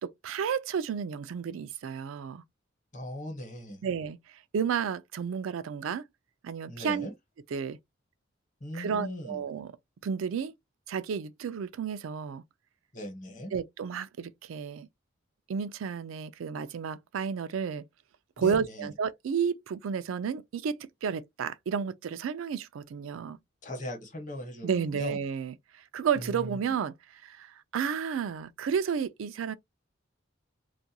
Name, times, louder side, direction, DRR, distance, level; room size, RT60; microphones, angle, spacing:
voice 1, 0.0-2.4 3.8-6.0 6.4-7.1 7.5-7.8 8.7-9.7 10.0-10.5 10.9-12.4 13.5-14.9 15.5-17.8 18.4-23.4 24.6-29.5, right 7 dB, 85° right, 0.4 m, -32 dB
voice 2, 2.9-3.9 6.7-7.1 8.6-9.4 12.9-13.5 18.4-18.9 23.6-25.2 26.1-26.7, left 1 dB, 40° left, 1.0 m, -39 dB
2.4 x 2.2 x 2.7 m
head